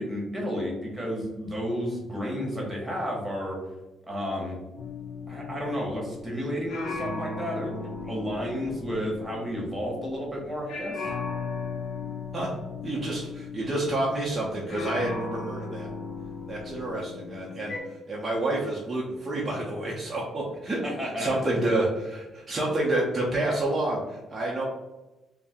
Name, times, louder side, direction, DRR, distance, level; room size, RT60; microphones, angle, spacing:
voice 1, 0.0-3.6 4.1-4.6 5.3-11.1 20.8-21.4, equal, 10° right, -2 dB, 1.2 m, -32 dB
sound 1, 4.8-10.4 10.7-17.8, left 4 dB, 70° left, 0.5 m, -37 dB
voice 2, 12.8-15.9 16.5-17.8 18.1-24.6, right 1 dB, 30° right, -4 dB, 0.6 m, -29 dB
2.5 x 2.1 x 3.4 m, 1.0 s
cardioid pair, 90°, 0 cm